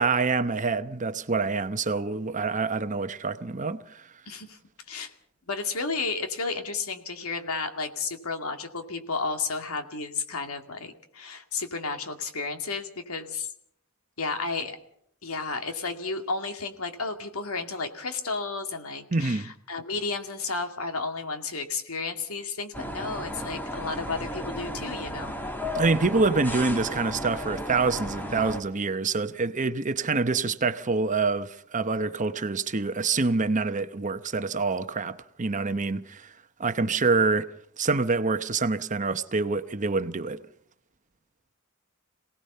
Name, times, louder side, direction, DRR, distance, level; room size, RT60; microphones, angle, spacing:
voice 1, 0.0-4.0 19.1-19.5 25.7-36.3 36.6-40.4, right 4 dB, 35° right, 0.9 m, -26 dB
voice 2, 4.3-4.6 4.9-5.1 5.5-13.5 14.2-14.8 15.2-25.4, left 4 dB, 90° left, 2.3 m, -32 dB
sound 1, 22.7-28.6, left 1 dB, 10° left, 1.7 m, -34 dB
27.5 x 18.0 x 5.6 m
head